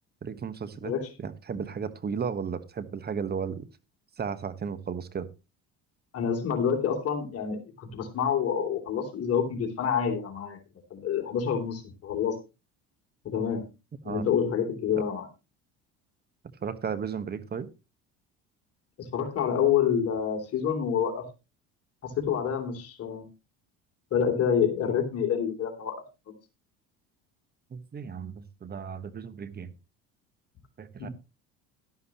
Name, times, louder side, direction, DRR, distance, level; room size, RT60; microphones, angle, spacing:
voice 1, 0.2-0.9 1.2-3.7 4.2-5.3 14.0-14.2 16.6-17.7 27.7-29.7 30.8-31.1, right 6 dB, 30° right, 13 dB, 1.3 m, -34 dB
voice 2, 6.1-10.6 10.9-12.4 13.2-13.6 14.0-15.3 19.0-21.2 22.0-23.3 24.1-25.9 31.0-31.1, left 7 dB, 50° left, 4 dB, 3.2 m, -27 dB
12.0 x 11.5 x 3.0 m, 0.27 s
supercardioid pair, 85°, 31 cm